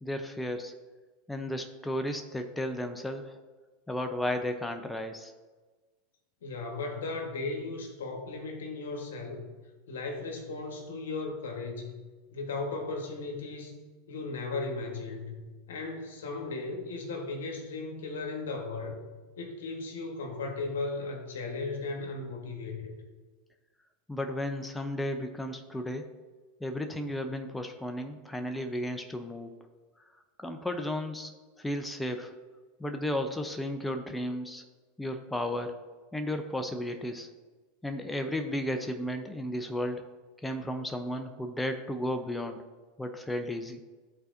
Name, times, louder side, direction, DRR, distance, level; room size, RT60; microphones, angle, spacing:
voice 1, 0.0-0.7 1.3-3.4 3.9-5.3 24.1-26.1 26.6-29.5 30.4-31.3 31.6-32.3 32.8-34.6 35.0-35.8 36.1-37.3 37.8-40.0 40.4-42.6 43.0-43.8, left 1 dB, 5° left, 5 dB, 0.6 m, -34 dB
voice 2, 6.4-9.5 9.9-12.0 12.3-13.8 14.1-15.4 15.7-19.0 19.4-22.9, left 3 dB, 80° left, 3 dB, 1.3 m, -36 dB
12.0 x 4.1 x 2.6 m, 1.3 s
hypercardioid pair, 95°, 0 cm